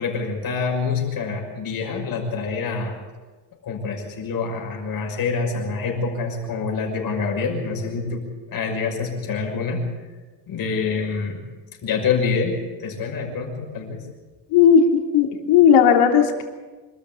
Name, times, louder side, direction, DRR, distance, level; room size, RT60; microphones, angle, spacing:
voice 1, 0.0-3.0 3.6-9.9 10.5-11.4 11.8-14.0, left 5 dB, 45° left, 2 dB, 6.0 m, -26 dB
voice 2, 14.5-14.8 15.1-16.4, left 8 dB, 85° left, 3 dB, 3.5 m, -15 dB
26.0 x 13.5 x 8.6 m, 1.3 s
cardioid pair, 145°, 49 cm